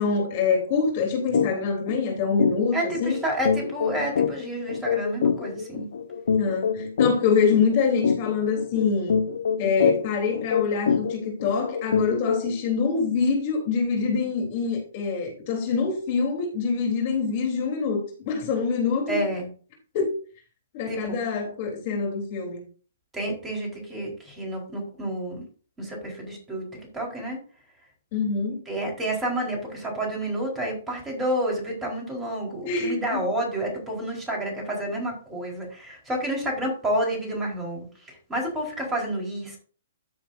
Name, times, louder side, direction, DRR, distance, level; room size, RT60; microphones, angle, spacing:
voice 1, 0.0-3.2 6.4-9.2 9.6-19.2 19.9-20.1 20.7-22.6 28.1-28.6 32.6-33.2, left 5 dB, 40° left, 1 dB, 3.6 m, -25 dB
sound 1, 1.3-1.5 1.9-2.0 2.4-12.6, left 6 dB, 65° left, 0.9 m, -26 dB
voice 2, 2.7-5.9 19.1-19.5 20.9-21.2 23.1-25.4 25.8-26.6 26.9-27.4 28.7-39.6, right 1 dB, 10° right, -1 dB, 4.4 m, -29 dB
13.5 x 7.4 x 2.7 m, 0.40 s
figure-of-eight pair, 125°, 0 cm